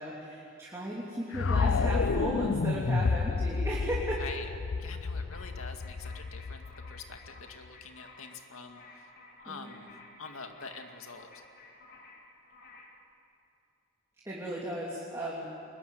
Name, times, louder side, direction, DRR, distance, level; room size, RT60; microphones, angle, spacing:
voice 1, 0.0-4.2 9.4-9.7 14.2-15.4, equal, 15° right, -5 dB, 3.2 m, -35 dB
sound 1, 1.3-7.4, left 4 dB, 65° left, 0.5 m, -30 dB
voice 2, 4.8-9.1 9.4-9.9 10.2-11.4, left 4 dB, 85° left, 5 dB, 2.3 m, -45 dB
sound 2, 5.3-13.0, left 3 dB, 45° left, 3.7 m, -54 dB
24.5 x 22.0 x 9.5 m, 2.8 s
head